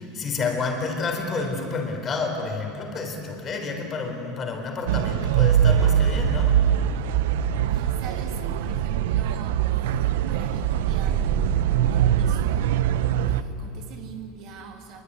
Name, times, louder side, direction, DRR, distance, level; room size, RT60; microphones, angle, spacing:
voice 1, 0.0-6.6, left 4 dB, 25° left, 4 dB, 4.2 m, -29 dB
sound 1, 4.9-13.4, right 9 dB, 90° right, 1.0 m, -22 dB
voice 2, 7.8-12.7 13.2-15.0, right 6 dB, 50° right, 3 dB, 2.9 m, -43 dB
26.5 x 23.0 x 9.7 m, 2.6 s
supercardioid pair, 155°, 0 cm